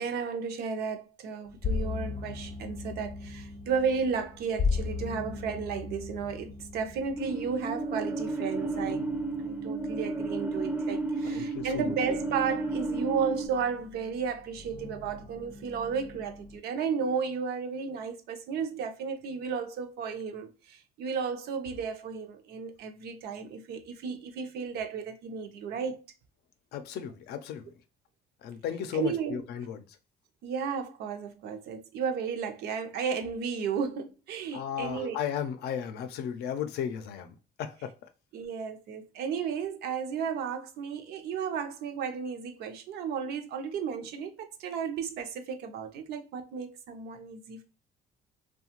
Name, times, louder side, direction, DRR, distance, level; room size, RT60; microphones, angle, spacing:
voice 1, 0.0-9.1 9.4-26.0 28.9-29.4 30.4-35.2 38.3-47.6, right 6 dB, 75° right, 0.6 m, -33 dB
sound 1, 1.5-16.6, left 4 dB, 35° left, 0.7 m, -38 dB
sound 2, 7.2-13.5, right 3 dB, 10° right, 0.4 m, -32 dB
voice 2, 11.3-11.9 26.7-27.7 28.4-29.8 34.5-37.9, left 9 dB, 75° left, 0.5 m, -35 dB
2.8 x 2.2 x 2.8 m
cardioid pair, 110°, 17 cm